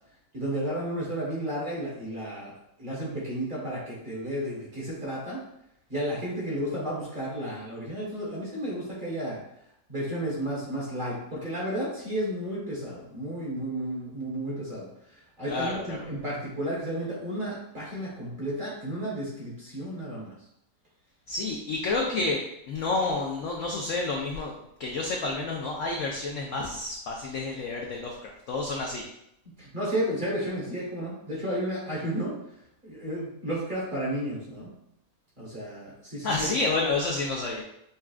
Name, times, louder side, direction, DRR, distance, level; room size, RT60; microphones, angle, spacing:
voice 1, 0.3-5.4 5.9-9.4 9.9-20.3 29.4-32.4 32.8-34.7 35.4-36.5, right 1 dB, 35° right, -6 dB, 1.1 m, -32 dB
voice 2, 15.5-16.0 21.3-22.4 22.7-24.5 24.8-29.0 36.2-37.6, left 3 dB, 70° left, -1 dB, 0.7 m, -29 dB
5.4 x 2.3 x 2.3 m, 0.78 s
omnidirectional pair, 1.8 m